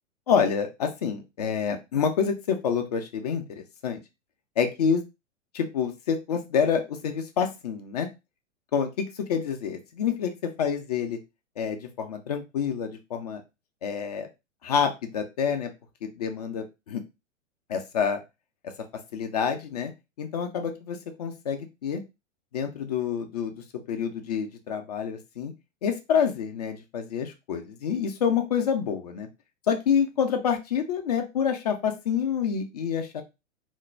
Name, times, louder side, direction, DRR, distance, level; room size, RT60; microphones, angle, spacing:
voice 1, 0.3-4.0 4.6-5.0 5.5-8.1 8.7-10.3 10.6-11.2 11.6-13.4 13.8-14.3 14.6-15.7 16.2-17.0 17.7-18.2 19.1-19.9 20.2-22.0 22.5-23.5 23.9-25.5 25.8-29.3 29.7-33.2, left 7 dB, 35° left, 5 dB, 0.4 m, -27 dB
2.5 x 2.1 x 3.0 m, 0.25 s
figure-of-eight pair, 105°, 38 cm